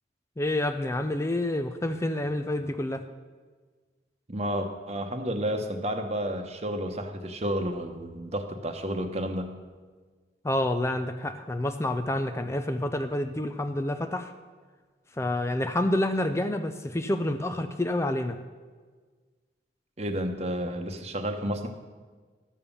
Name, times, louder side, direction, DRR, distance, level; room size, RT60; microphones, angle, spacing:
voice 1, 0.4-3.0 10.4-14.3 15.2-18.4, left 1 dB, 15° left, 8 dB, 0.5 m, -28 dB
voice 2, 4.3-9.6 20.0-21.7, equal, 40° right, 6 dB, 1.0 m, -31 dB
12.0 x 7.2 x 7.0 m, 1.4 s
head